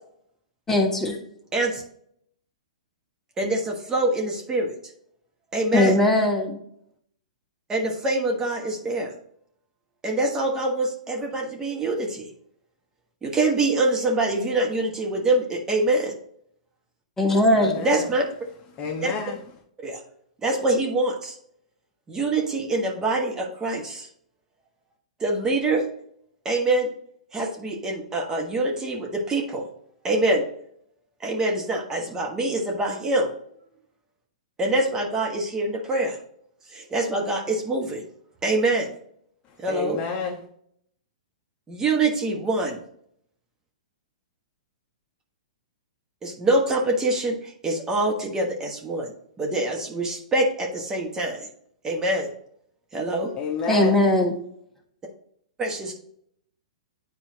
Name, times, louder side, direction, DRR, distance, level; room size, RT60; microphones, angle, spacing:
voice 1, 0.7-1.2 5.7-6.6 17.2-17.7 53.7-54.3, left 1 dB, 10° left, 1.6 m, -19 dB
voice 2, 1.5-1.8 3.4-4.8 5.5-6.0 7.7-9.1 10.0-12.3 13.2-16.1 17.8-18.3 19.0-19.1 19.8-20.0 20.4-21.3 22.1-24.1 25.2-25.8 26.4-26.9 27.3-29.6 30.0-30.4 31.2-33.3 34.6-36.2 36.7-38.0 38.4-38.9 39.6-40.0 41.7-42.8 46.2-49.1 49.4-51.5 51.8-52.3 52.9-53.3 55.6-55.9, right 2 dB, 15° right, 1.3 m, -25 dB
voice 3, 17.5-18.1 18.7-19.4 39.5-40.4 53.4-54.0, left 4 dB, 30° left, 1.1 m, -31 dB
10.0 x 4.4 x 2.8 m
hypercardioid pair, 115°, 4 cm